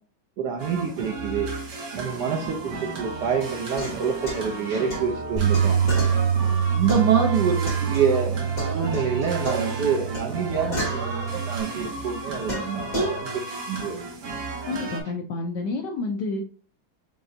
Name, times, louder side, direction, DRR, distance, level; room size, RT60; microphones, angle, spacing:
voice 1, 0.4-1.5 1.9-5.8 6.7-8.4 8.6-13.3 13.7-14.0, right 6 dB, 70° right, 3 dB, 1.0 m, -26 dB
sound 1, 0.6-15.0, right 3 dB, 55° right, 1.2 m, -35 dB
sound 2, 3.7-8.3 8.6-11.8 12.5-13.2, right 1 dB, 40° left, 2.4 m, -33 dB
Bass guitar, 5.4-11.6, right 7 dB, 25° left, 0.5 m, -25 dB
voice 2, 14.6-16.4, left 3 dB, 75° left, 4 dB, 1.0 m, -29 dB
5.2 x 3.3 x 2.6 m, 0.42 s
omnidirectional pair, 2.3 m